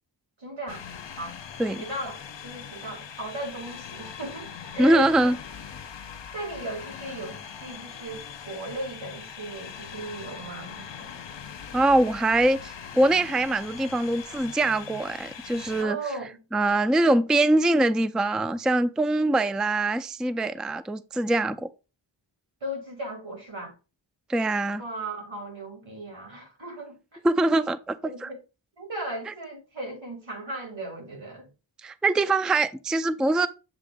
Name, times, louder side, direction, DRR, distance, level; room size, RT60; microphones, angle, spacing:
voice 1, 0.4-0.8 1.1-1.4 1.7-5.3 6.3-11.2 15.8-16.4 22.6-23.7 24.8-27.0 28.0-28.4 28.8-31.5, right 1 dB, 85° right, 2.9 m, -36 dB
sound 1, 0.7-15.8, left 7 dB, 70° left, 0.7 m, -41 dB
voice 2, 4.8-5.3 11.7-16.0 16.5-21.7 24.3-24.8 27.2-28.3 29.3-29.4 31.8-33.5, right 2 dB, ahead, 0.3 m, -23 dB
7.4 x 2.5 x 5.0 m
wide cardioid pair, 55°, 45 cm